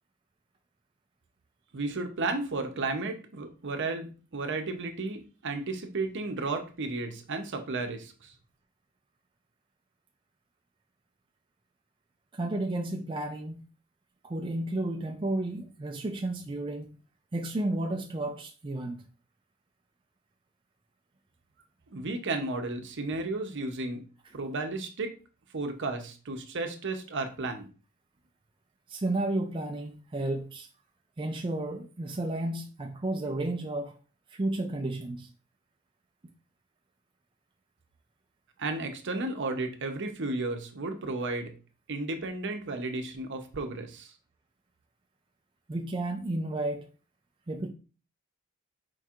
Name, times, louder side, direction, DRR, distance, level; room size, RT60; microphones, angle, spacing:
voice 1, 1.7-8.3 21.9-24.0 24.3-25.1 25.5-27.7 38.6-41.5 41.9-44.1, right 3 dB, 60° right, 0.8 m, -33 dB
voice 2, 12.3-13.6 14.2-16.9 17.3-19.0 28.9-30.7 31.2-33.9 34.3-35.3 45.7-46.9 47.5-47.7, right 2 dB, 25° right, 0.4 m, -32 dB
4.6 x 4.4 x 2.5 m
head